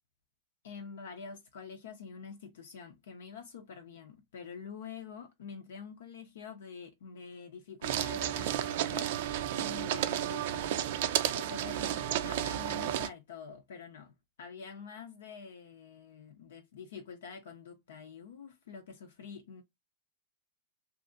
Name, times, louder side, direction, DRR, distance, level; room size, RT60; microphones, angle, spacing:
voice 1, 0.6-10.7 11.0-19.6, left 5 dB, 80° left, 0.6 m, -47 dB
sound 1, 7.8-13.1, right 11 dB, 65° right, 0.4 m, -32 dB
2.7 x 2.5 x 2.4 m
hypercardioid pair, 130°, 0 cm